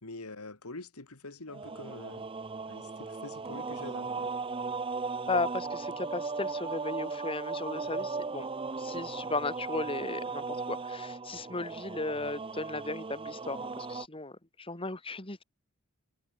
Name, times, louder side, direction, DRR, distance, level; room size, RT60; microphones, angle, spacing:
voice 1, 0.0-2.2 2.7-4.3, left 2 dB, 90° left, 2.6 m, -45 dB
sound 1, 1.5-14.1, right 4 dB, 25° right, 0.6 m, -37 dB
voice 2, 5.3-8.5 8.8-15.4, left 2 dB, 25° left, 2.8 m, -35 dB
head